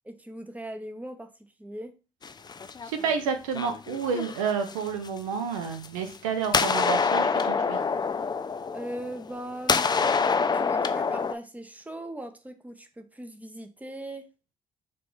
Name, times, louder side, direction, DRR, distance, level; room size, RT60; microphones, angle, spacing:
voice 1, 0.0-1.3 1.6-2.0 8.7-9.9 10.2-14.3, right 1 dB, 10° right, 6 dB, 0.7 m, -39 dB
sound 1, 2.2-3.1 3.5-5.1 5.7-6.2 6.4-9.4 9.7-11.3, left 5 dB, 25° left, 0.3 m, -26 dB
voice 2, 2.8-7.8, right 6 dB, 90° right, 7 dB, 0.4 m, -30 dB
2.8 x 2.4 x 3.8 m, 0.33 s
hypercardioid pair, 45°, 17 cm